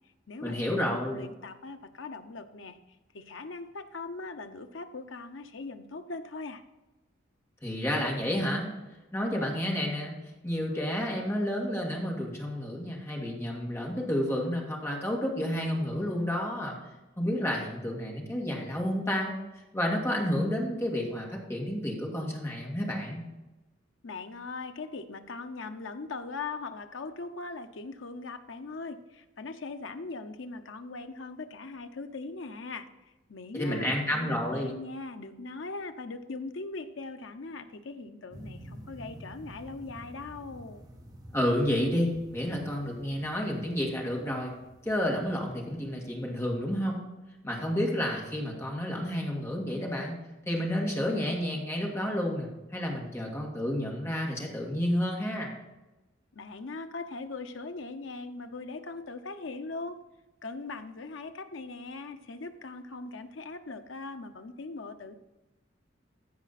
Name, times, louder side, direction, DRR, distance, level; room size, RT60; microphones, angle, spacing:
voice 1, 0.4-1.2 7.6-8.7 9.1-10.2 10.4-16.8 17.2-19.4 19.7-23.2 33.5-34.7 41.3-44.5 44.8-47.1 47.4-50.2 50.5-55.5, equal, 15° left, -1 dB, 2.1 m, -30 dB
voice 2, 0.9-2.8 3.1-6.6 24.0-32.9 33.3-40.8 56.3-60.0 60.4-65.1, left 3 dB, 70° left, 8 dB, 0.8 m, -40 dB
sound 1, 38.3-46.7, equal, 20° right, 1.3 m, -50 dB
14.5 x 5.0 x 4.2 m, 1.1 s
head